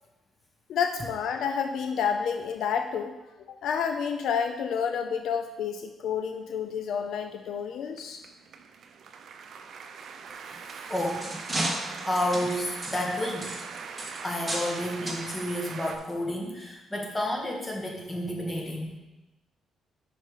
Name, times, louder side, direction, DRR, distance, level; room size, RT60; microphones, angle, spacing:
voice 1, 0.7-3.1 3.5-8.2, left 7 dB, 75° left, 6 dB, 0.4 m, -29 dB
sound 1, 6.7-16.0, right 5 dB, 65° right, 0.5 m, -42 dB
voice 2, 10.3-10.6 10.9-11.3 12.0-13.5 14.2-19.0, left 1 dB, 15° left, 0 dB, 1.5 m, -31 dB
sound 2, 10.5-14.8 15.1-15.2 16.0-16.1 16.6-16.7, right 1 dB, 15° right, 1.4 m, -34 dB
5.4 x 4.9 x 5.0 m, 1.0 s
cardioid pair, 90°, 0 cm